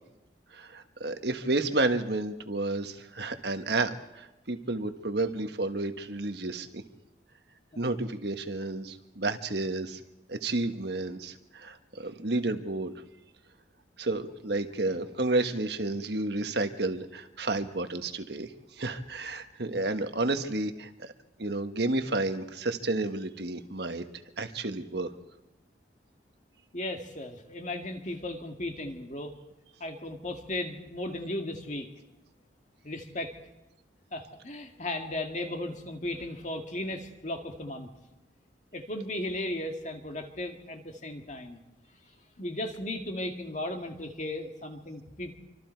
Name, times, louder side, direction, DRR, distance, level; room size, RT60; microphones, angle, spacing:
voice 1, 0.5-6.8 7.8-10.0 10.3-12.9 14.0-21.1 21.4-24.0 24.4-25.1, right 2 dB, 60° right, 8 dB, 1.4 m, -31 dB
voice 2, 26.7-29.3 29.8-31.9 32.8-33.3 34.1-37.9 38.7-41.6 42.4-45.4, left 1 dB, 40° left, 4 dB, 2.2 m, -36 dB
27.0 x 25.0 x 4.6 m, 0.95 s
head